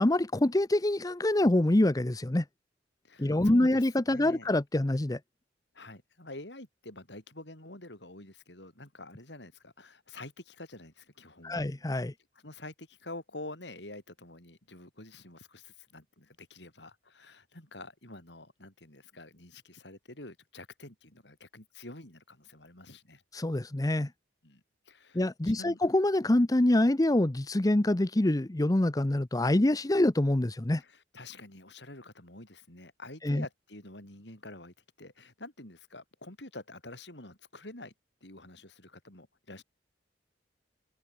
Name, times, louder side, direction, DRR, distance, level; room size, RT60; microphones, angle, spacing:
voice 1, 0.0-2.4 3.2-5.2 11.4-12.1 23.3-24.1 25.1-30.8 33.2-33.4, left 1 dB, 20° left, 0.7 m, -25 dB
voice 2, 3.0-4.5 5.7-11.7 12.4-23.2 24.4-25.8 30.8-37.9 38.2-39.6, left 2 dB, 65° left, 6.4 m, -48 dB
open air
head